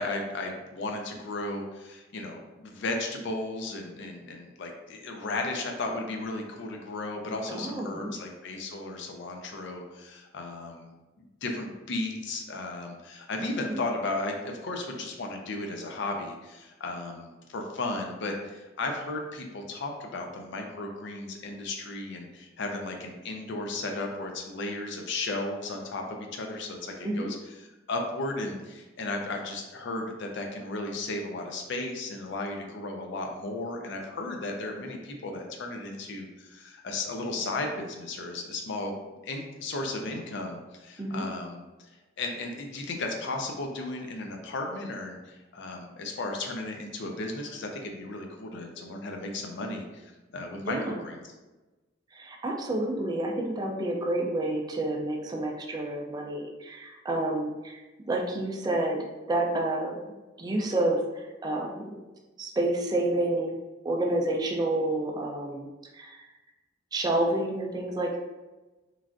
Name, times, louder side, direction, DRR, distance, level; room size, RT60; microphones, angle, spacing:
voice 1, 0.0-10.9 11.4-27.4 27.9-39.0 39.2-41.6 42.2-51.2, left 2 dB, 65° left, 2 dB, 0.5 m, -35 dB
voice 2, 7.5-8.1 13.7-13.8 27.0-27.3 41.0-41.2 50.6-51.0 52.1-57.8 58.1-60.0 60.4-62.0 62.4-63.6 63.8-65.7 65.9-66.3 66.9-68.2, right 1 dB, 20° right, 0 dB, 0.3 m, -29 dB
3.1 x 2.4 x 2.4 m, 1.1 s
head